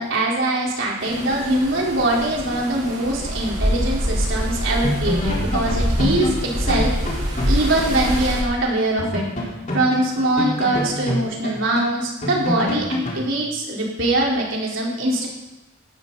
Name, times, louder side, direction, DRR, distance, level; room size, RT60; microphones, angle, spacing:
voice 1, 0.0-6.9 7.5-9.2 9.7-12.9 13.1-15.3, right 1 dB, 70° right, -3 dB, 4.3 m, -22 dB
sound 1, 1.0-8.4, equal, 40° right, 4.7 m, -25 dB
sound 2, 4.5-4.6 4.8-8.3 8.5-8.6 9.0-13.3, left 1 dB, 40° left, 4.2 m, -26 dB
16.5 x 13.5 x 4.2 m, 0.98 s
head